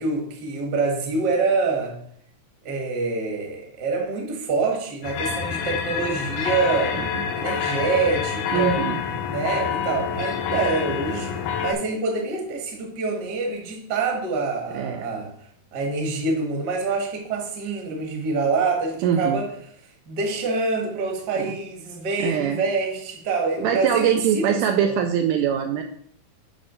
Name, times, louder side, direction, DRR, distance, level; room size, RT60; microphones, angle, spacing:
voice 1, 0.0-1.9 2.6-7.0 7.3-8.8 9.3-15.3 15.7-19.5 20.1-25.0, right 4 dB, 50° right, 1 dB, 1.2 m, -26 dB
sound 1, 5.0-11.7, left 7 dB, 75° left, 2.1 m, -27 dB
voice 2, 8.5-9.0 14.7-15.1 19.0-19.4 21.4-21.6 22.2-22.6 23.6-25.8, right 8 dB, 80° right, 4 dB, 1.9 m, -23 dB
8.7 x 3.2 x 5.6 m, 0.65 s
omnidirectional pair, 4.0 m